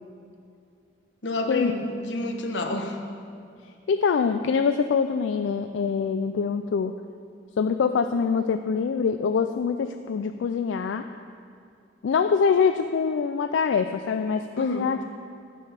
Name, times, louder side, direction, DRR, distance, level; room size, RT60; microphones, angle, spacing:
voice 1, 1.2-3.0 14.6-14.9, left 2 dB, 70° left, 3 dB, 1.1 m, -29 dB
voice 2, 3.9-6.9 7.6-11.1 12.0-15.2, left 5 dB, 85° left, 8 dB, 0.4 m, -24 dB
12.0 x 6.4 x 5.8 m, 2.4 s
head